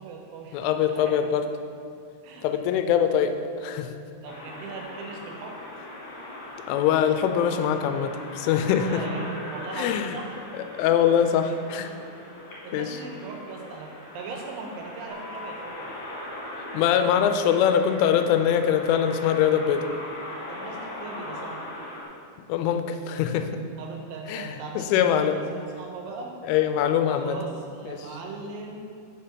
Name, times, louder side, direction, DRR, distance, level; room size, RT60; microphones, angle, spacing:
voice 1, 0.0-1.3 2.2-2.6 4.2-5.6 8.9-10.4 12.4-15.9 20.5-21.7 23.8-26.3 27.1-28.9, right 4 dB, 85° right, 1 dB, 3.3 m, -39 dB
voice 2, 0.5-1.5 2.4-3.9 6.7-9.0 9.7-10.2 10.8-11.9 12.7-13.0 16.7-19.9 22.5-23.5 24.3-25.4 26.4-27.4 27.9-28.0, left 9 dB, 85° left, 7 dB, 3.0 m, -23 dB
sound 1, 4.2-22.0, left 1 dB, 55° left, 2.3 m, -40 dB
sound 2, 15.1-22.1, left 2 dB, 60° right, 1.3 m, -51 dB
6.6 x 5.6 x 5.8 m, 2.4 s
omnidirectional pair, 5.5 m